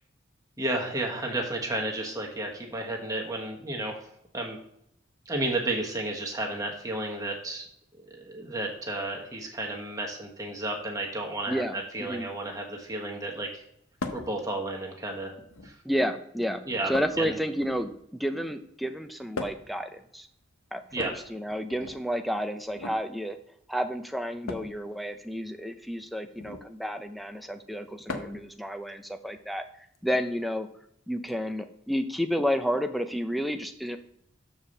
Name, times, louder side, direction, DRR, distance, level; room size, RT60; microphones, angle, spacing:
voice 1, 0.6-4.0 4.3-4.6 5.3-7.6 8.1-13.6 14.1-15.3 15.6-15.7 16.6-16.9 17.2-17.4 20.9-21.1, right 2 dB, 15° right, 0 dB, 1.3 m, -32 dB
voice 2, 11.5-12.3 15.8-20.3 20.7-23.4 23.7-29.6 30.0-30.7 31.1-34.0, equal, ahead, 6 dB, 0.6 m, -31 dB
sound 1, 14.0-14.3 15.4-15.9 16.9-18.0 19.3-19.8 20.9-22.0 22.7-23.0 24.5-24.8 26.3-26.7 28.1-28.5 29.9-30.0 31.3-31.4, left 3 dB, 80° left, 1.0 m, -38 dB
7.1 x 4.6 x 6.5 m, 0.74 s
head